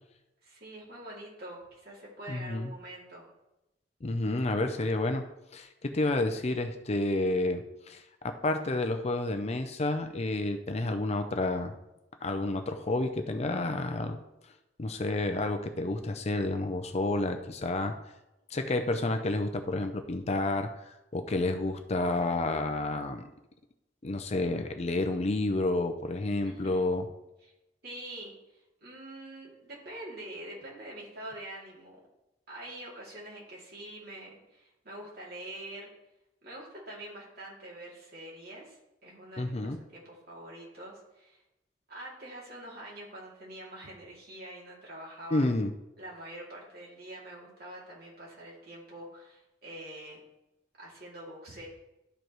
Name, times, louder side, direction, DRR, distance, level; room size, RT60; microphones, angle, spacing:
voice 1, 0.4-3.2 26.4-26.9 27.4-27.5 27.8-28.3 28.8-32.0 32.5-35.9 36.4-41.4 41.9-45.4 46.0-50.2 50.8-51.7, right 1 dB, 55° right, -4 dB, 2.6 m, -45 dB
voice 2, 2.3-2.7 4.0-5.3 5.5-11.7 12.2-14.2 14.8-18.0 18.5-20.7 21.1-23.3 24.0-27.1 39.4-39.8 45.3-45.7, left 2 dB, 35° left, 7 dB, 0.5 m, -30 dB
12.5 x 5.0 x 3.1 m, 0.94 s
head